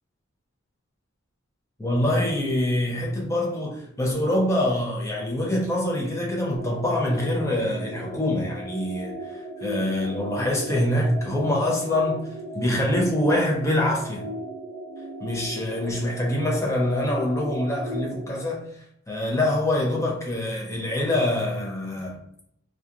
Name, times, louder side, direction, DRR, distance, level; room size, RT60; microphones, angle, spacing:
voice 1, 1.8-12.3 12.5-14.2 15.2-18.7 19.1-22.2, left 1 dB, 15° left, 0.5 m, -25 dB
sound 1, 6.6-18.4, right 1 dB, 65° right, 0.9 m, -37 dB
2.9 x 2.3 x 2.4 m
head